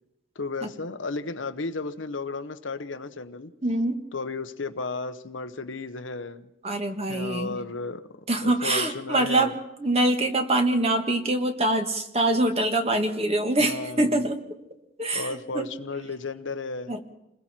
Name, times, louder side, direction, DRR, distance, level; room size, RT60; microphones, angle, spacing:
voice 1, 0.3-3.5 4.1-6.5 7.1-8.1 8.4-9.5 13.6-14.2 15.1-16.9, left 3 dB, 85° left, 10 dB, 1.1 m, -34 dB
voice 2, 3.6-4.0 6.6-7.6 8.3-9.5 9.8-14.4 15.0-15.7 16.9-17.0, right 1 dB, 35° right, 5 dB, 2.0 m, -24 dB
28.5 x 21.0 x 4.5 m, 0.91 s
head